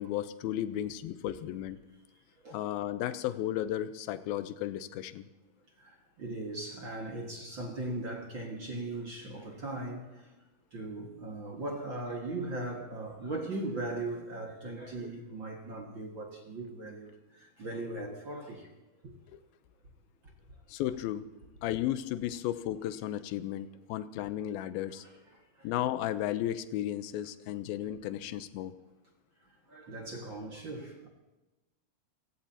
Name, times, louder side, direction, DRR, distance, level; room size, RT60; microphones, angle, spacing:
voice 1, 0.0-1.8 2.5-5.3 19.3-19.4 20.7-21.2 21.6-25.1 25.6-28.7, left 12 dB, 80° left, 2.5 m, -34 dB
voice 2, 5.8-10.3 10.7-18.7 19.0-19.1 20.2-20.3 25.0-25.7 29.7-31.1, right 2 dB, 40° right, 1.8 m, -39 dB
29.5 x 17.0 x 2.9 m
omnidirectional pair, 4.6 m